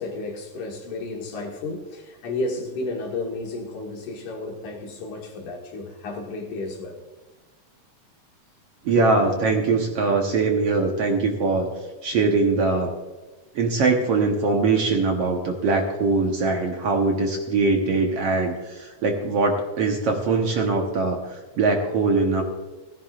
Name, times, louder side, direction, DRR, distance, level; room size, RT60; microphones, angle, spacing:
voice 1, 0.0-7.0, left 2 dB, 70° left, 1 dB, 3.2 m, -32 dB
voice 2, 8.8-11.7 12.0-12.9 13.5-21.2 21.6-22.4, right 3 dB, 60° right, 2 dB, 1.8 m, -22 dB
16.5 x 14.5 x 2.5 m, 1.2 s
omnidirectional pair, 3.7 m